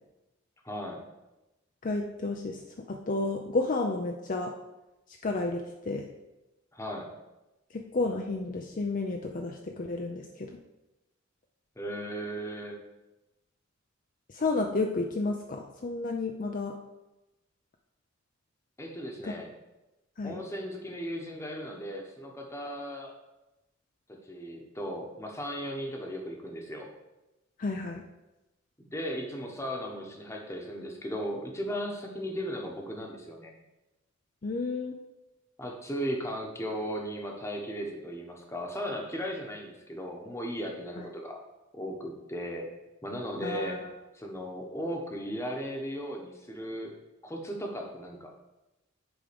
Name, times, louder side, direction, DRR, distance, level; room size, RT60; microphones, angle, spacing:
voice 1, 0.6-1.0 6.7-7.1 11.8-12.8 18.8-19.5 20.2-23.1 24.3-26.9 28.9-33.5 35.6-41.4 41.7-42.7 43.0-43.8 44.1-46.9 47.2-48.3, equal, 15° left, 1 dB, 1.0 m, -36 dB
voice 2, 1.8-2.6 2.9-4.5 5.2-6.0 7.7-10.6 14.3-16.7 19.2-19.3 20.2-20.4 27.6-28.0 34.4-34.9 41.0-41.1 43.4-43.9, left 3 dB, 40° left, 2 dB, 0.5 m, -31 dB
8.4 x 3.7 x 5.1 m, 1.0 s
head